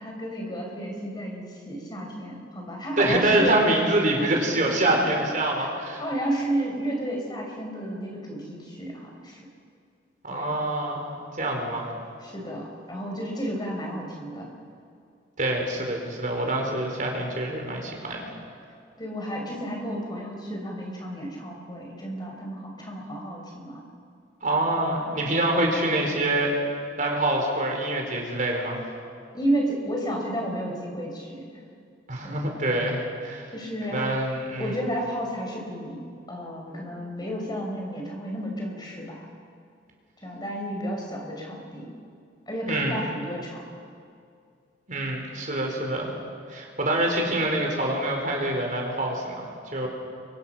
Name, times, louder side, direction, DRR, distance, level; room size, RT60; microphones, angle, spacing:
voice 1, 0.0-3.6 5.6-5.7 6.0-9.4 10.3-10.5 12.2-14.5 19.0-23.8 29.3-31.4 32.2-32.4 33.5-34.0 34.6-36.0 36.3-39.3 40.2-41.9 42.5-43.6, equal, 25° left, 0 dB, 5.5 m, -32 dB
voice 2, 3.0-6.0 10.2-11.0 11.4-11.8 15.4-18.2 24.4-26.5 27.0-28.8 32.1-33.5 33.9-34.8 42.7-43.0 44.9-46.1 46.5-49.9, right 1 dB, 45° right, 0 dB, 4.9 m, -25 dB
30.0 x 24.0 x 5.9 m, 2.3 s
head